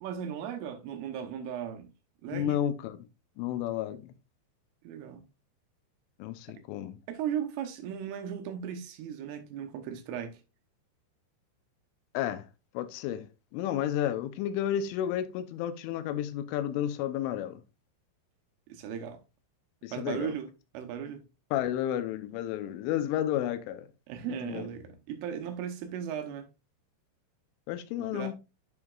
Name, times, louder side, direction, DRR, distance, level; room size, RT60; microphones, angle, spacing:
voice 1, 0.0-1.9 2.2-2.6 4.8-5.2 7.1-10.4 18.7-19.2 19.9-21.2 24.1-26.5 28.0-28.3, right 8 dB, 80° right, 3.4 m, -37 dB
voice 2, 2.3-3.1 3.4-4.1 6.2-7.0 12.1-12.5 12.7-13.3 13.5-17.6 19.8-20.3 21.5-23.9 24.3-24.7 27.7-28.3, left 11 dB, 80° left, 3.1 m, -32 dB
10.5 x 5.0 x 2.4 m
omnidirectional pair, 5.9 m